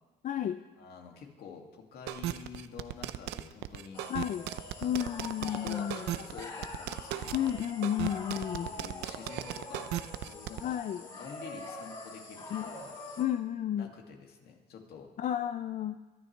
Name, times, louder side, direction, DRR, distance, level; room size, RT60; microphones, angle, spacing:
voice 1, 0.2-0.6 4.1-4.5 4.8-6.1 7.3-8.7 10.6-11.0 12.5-12.7 13.2-13.9 15.2-16.0, left 10 dB, 50° left, 9 dB, 0.5 m, -32 dB
voice 2, 0.8-4.1 4.8-4.9 5.5-7.4 8.6-12.9 13.8-15.1, left 6 dB, 70° left, 1 dB, 2.4 m, -48 dB
sound 1, 2.1-10.6, right 14 dB, 90° right, 0.6 m, -37 dB
sound 2, 3.9-13.2, left 2 dB, 30° left, 4.4 m, -44 dB
23.0 x 12.0 x 3.3 m, 1.2 s
cardioid pair, 110°, 17 cm